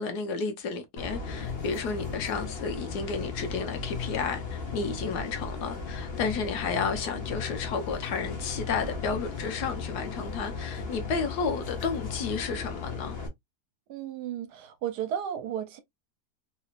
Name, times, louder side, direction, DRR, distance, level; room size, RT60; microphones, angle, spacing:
voice 1, 0.0-13.1, left 5 dB, 80° left, 1.4 m, -32 dB
sound 1, 1.0-13.3, left 4 dB, 45° left, 1.1 m, -36 dB
voice 2, 13.9-15.8, right 9 dB, 80° right, 1.3 m, -34 dB
3.3 x 3.0 x 2.4 m
omnidirectional pair, 1.7 m